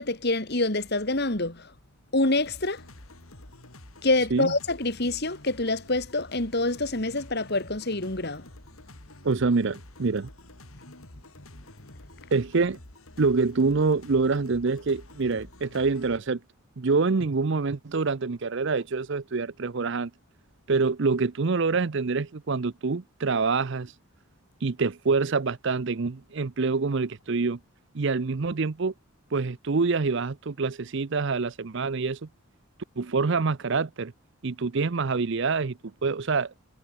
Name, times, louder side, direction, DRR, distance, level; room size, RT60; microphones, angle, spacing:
voice 1, 0.0-1.7 2.1-2.8 4.0-8.4, left 2 dB, 50° left, 2.4 m, -26 dB
sound 1, 2.4-16.2, left 1 dB, 75° left, 4.3 m, -49 dB
voice 2, 9.2-10.3 12.3-12.8 13.2-16.4 16.8-20.1 20.7-23.9 24.6-27.6 27.9-28.9 29.3-32.3 33.0-34.1 34.4-36.5, right 4 dB, 55° right, 0.6 m, -26 dB
head